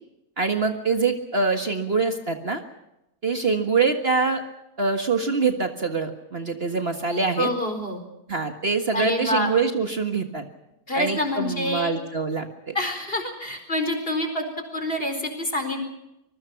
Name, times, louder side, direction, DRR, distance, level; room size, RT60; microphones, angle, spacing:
voice 1, 0.4-2.6 3.2-4.4 4.8-7.5 8.3-10.4 11.0-12.7, right 4 dB, 40° right, 6 dB, 1.8 m, -24 dB
voice 2, 7.4-8.0 8.9-9.5 10.9-11.9 12.7-14.5 14.7-15.9, left 1 dB, 40° left, 6 dB, 4.6 m, -26 dB
25.5 x 22.5 x 5.9 m, 0.89 s
omnidirectional pair, 1.6 m